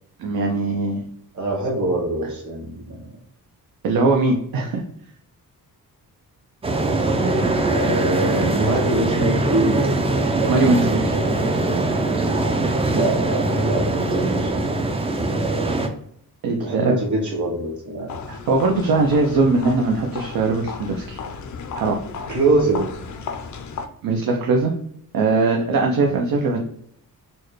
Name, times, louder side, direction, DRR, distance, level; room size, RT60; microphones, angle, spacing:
voice 1, 0.2-1.0 3.8-4.8 10.5-11.2 16.4-17.0 18.3-21.2 21.7-22.0 24.0-24.7 25.1-26.6, right 3 dB, 70° right, 1 dB, 0.6 m, -20 dB
voice 2, 1.3-3.0 7.1-9.9 12.9-14.5 16.6-18.1 22.3-22.9 26.1-26.3, right 2 dB, 50° right, -1 dB, 1.4 m, -24 dB
sound 1, 6.6-15.9, right 2 dB, 15° right, 0.4 m, -21 dB
sound 2, 18.1-23.9, left 5 dB, 50° left, 0.5 m, -34 dB
4.3 x 2.2 x 3.1 m, 0.67 s
cardioid pair, 115°, 36 cm